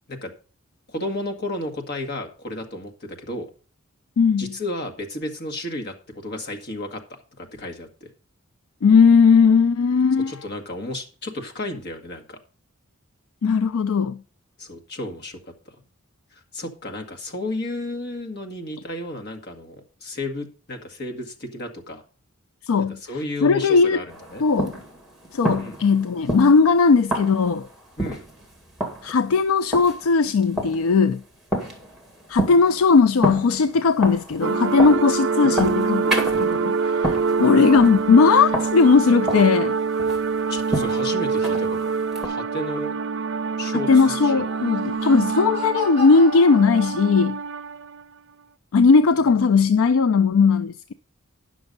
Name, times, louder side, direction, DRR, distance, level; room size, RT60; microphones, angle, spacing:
voice 1, 0.9-3.5 4.4-7.0 7.4-8.1 10.3-12.4 14.6-15.8 16.5-22.0 22.8-24.0 24.3-24.4 25.6-25.8 28.0-28.2 35.4-36.1 40.1-40.2 40.5-41.9 42.2-43.0 43.6-44.4, left 1 dB, 50° left, 1.7 m, -33 dB
voice 2, 4.2-4.5 8.8-10.4 13.4-14.2 22.6-23.0 23.4-24.0 24.4-24.7 25.3-27.7 29.0-31.2 32.3-36.0 36.4-39.8 43.9-47.4 48.7-50.9, left 5 dB, 75° left, 0.4 m, -18 dB
sound 1, 24.1-42.3, right 1 dB, ahead, 2.1 m, -31 dB
sound 2, 34.4-48.0, right 5 dB, 60° right, 0.5 m, -25 dB
Laughter, 44.4-47.5, left 1 dB, 30° left, 5.1 m, -35 dB
9.7 x 6.2 x 5.2 m
head